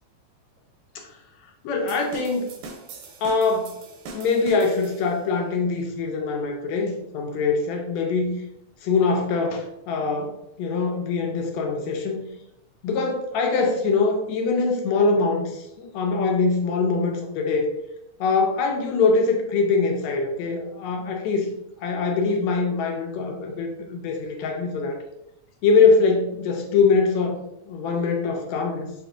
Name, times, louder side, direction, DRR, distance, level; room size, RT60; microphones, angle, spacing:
voice 1, 1.6-2.5 3.2-3.8 4.1-8.4 8.8-12.2 12.8-17.7 18.2-21.5 21.8-25.0 25.6-27.4 27.7-28.9, left 4 dB, 80° left, 2 dB, 1.6 m, -23 dB
sound 1, 1.9-5.3, right 3 dB, 90° right, 2.1 m, -42 dB
5.0 x 2.9 x 2.4 m, 0.85 s
omnidirectional pair, 3.5 m